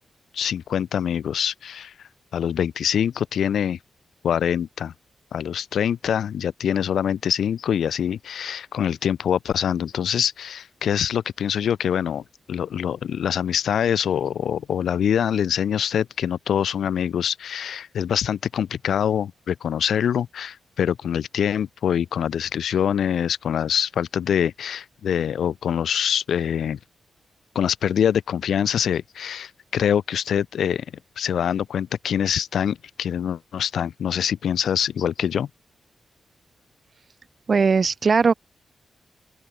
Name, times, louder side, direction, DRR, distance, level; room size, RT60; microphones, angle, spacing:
voice 1, 0.3-1.9 2.3-3.8 4.2-4.9 5.3-26.8 27.5-30.8 31.2-35.5, left 8 dB, 90° left, 0.8 m, -24 dB
voice 2, 37.5-38.3, right 5 dB, 45° right, 1.2 m, -18 dB
open air
cardioid pair, 100°, 0 cm